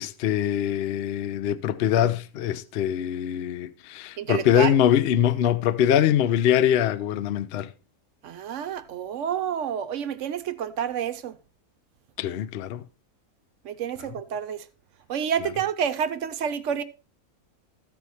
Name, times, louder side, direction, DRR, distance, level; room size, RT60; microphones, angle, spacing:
voice 1, 0.0-7.7 12.2-12.8, left 10 dB, 60° left, 0.7 m, -23 dB
voice 2, 4.2-4.7 8.2-11.4 13.6-14.6 15.1-16.8, right 8 dB, 65° right, 0.9 m, -29 dB
14.0 x 4.8 x 4.1 m
omnidirectional pair, 1.5 m